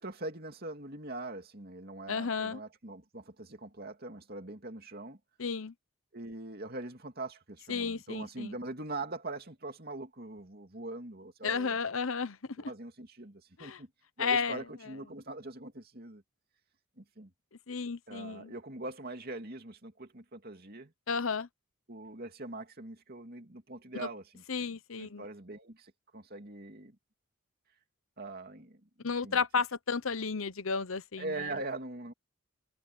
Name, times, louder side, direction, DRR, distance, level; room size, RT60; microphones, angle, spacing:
voice 1, 0.0-5.2 6.1-11.8 12.7-13.9 14.2-16.2 17.0-17.3 18.1-20.9 21.9-27.0 28.2-29.4 31.2-32.1, right 2 dB, 45° right, 2.8 m, -42 dB
voice 2, 2.1-2.6 5.4-5.7 7.7-8.5 11.4-12.7 13.6-13.8 14.2-14.9 17.7-18.5 21.1-21.5 23.9-24.1 24.5-25.2 29.0-31.5, left 5 dB, 70° left, 1.0 m, -33 dB
head